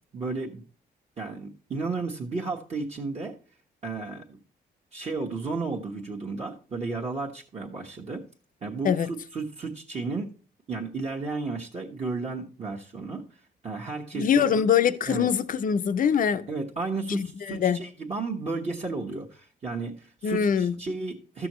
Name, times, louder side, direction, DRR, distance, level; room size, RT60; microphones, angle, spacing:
voice 1, 0.1-0.6 1.2-3.4 3.8-4.4 4.9-8.2 8.6-10.3 10.7-13.3 13.6-14.5 15.1-15.3 16.5-21.5, right 3 dB, 40° right, 1.2 m, -33 dB
voice 2, 14.1-16.5 17.1-17.8 20.2-20.8, left 8 dB, 50° left, 0.5 m, -23 dB
13.5 x 6.1 x 3.0 m
cardioid pair, 100°, 17 cm